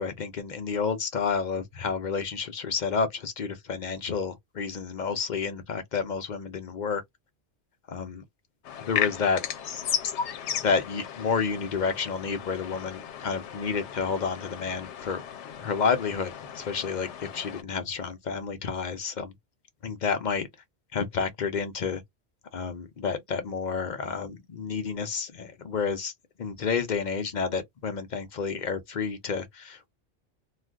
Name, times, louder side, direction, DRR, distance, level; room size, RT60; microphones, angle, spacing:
voice 1, 0.0-7.0 7.9-8.2 8.8-9.4 10.5-15.2 15.6-19.3 19.8-20.5 20.9-22.0 22.5-26.1 26.4-29.9, left 5 dB, 50° left, 0.6 m, -30 dB
sound 1, 8.6-17.6, left 8 dB, 85° left, 0.9 m, -35 dB
2.4 x 2.3 x 3.4 m
omnidirectional pair, 1.2 m